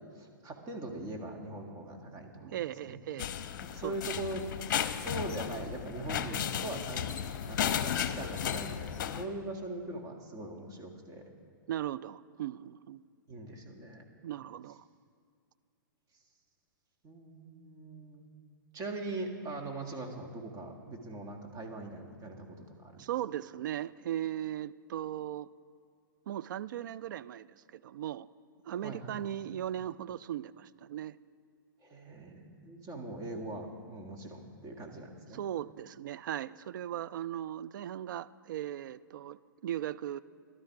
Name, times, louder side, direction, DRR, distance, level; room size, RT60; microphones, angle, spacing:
voice 1, 0.2-2.6 2.9-3.0 3.6-7.1 7.4-11.3 13.3-14.1 17.0-18.3 18.7-23.0 28.8-29.2 31.8-35.4, right 2 dB, 25° right, 2 dB, 1.8 m, -41 dB
voice 2, 2.4-3.3 3.8-3.9 11.7-13.0 14.2-14.8 23.0-25.5 26.3-28.3 28.7-31.2 35.3-40.2, right 11 dB, 60° right, 16 dB, 0.4 m, -38 dB
sound 1, 3.2-9.2, left 9 dB, 55° left, 0.7 m, -34 dB
14.5 x 12.0 x 4.7 m, 2.3 s
hypercardioid pair, 120°, 12 cm